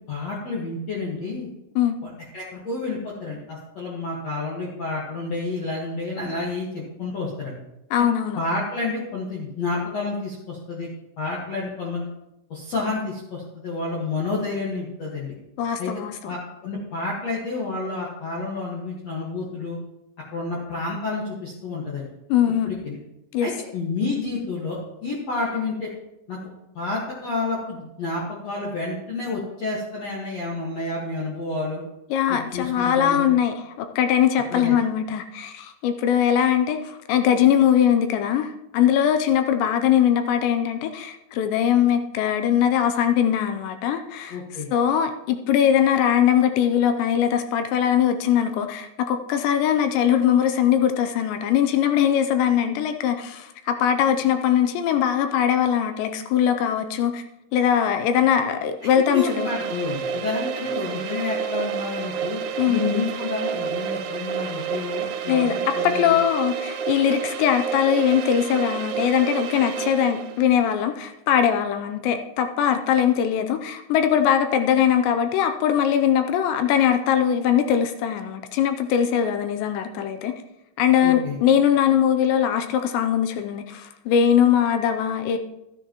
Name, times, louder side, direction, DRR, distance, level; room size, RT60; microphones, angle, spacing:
voice 1, 0.1-1.5 2.0-7.5 8.0-8.1 8.3-10.9 11.2-12.1 12.5-15.3 15.8-15.9 16.2-19.8 20.3-22.1 22.6-23.0 23.4-25.9 26.3-26.4 26.8-31.8 32.3-33.3 34.5-34.8 44.3-44.7 58.8-62.4 62.7-66.2 81.0-81.4, left 3 dB, 60° left, -5 dB, 1.7 m, -29 dB
voice 2, 7.9-8.4 15.6-16.3 22.3-22.7 23.3-23.5 32.1-44.4 44.7-57.2 57.5-59.5 62.6-62.8 65.3-65.5 65.8-80.3 80.8-85.4, left 9 dB, 85° left, 7 dB, 2.7 m, -21 dB
sound 1, 58.8-70.5, right 7 dB, 85° right, 3.1 m, -30 dB
13.0 x 9.9 x 3.0 m, 0.88 s
omnidirectional pair, 5.3 m